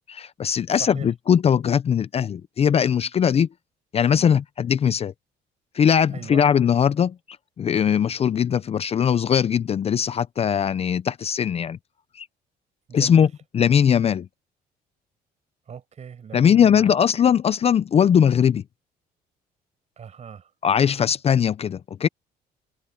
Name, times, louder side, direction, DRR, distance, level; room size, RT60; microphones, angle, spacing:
voice 1, 0.1-3.5 3.9-5.1 5.7-7.1 7.6-11.8 12.2-12.3 12.9-13.3 13.5-14.3 16.3-18.6 20.6-22.1, left 8 dB, 35° left, 0.6 m, -20 dB
voice 2, 0.7-1.1 6.1-6.4 12.9-13.3 15.7-16.9 20.0-20.5, right 7 dB, 40° right, 6.0 m, -39 dB
cardioid pair, 110°, 17 cm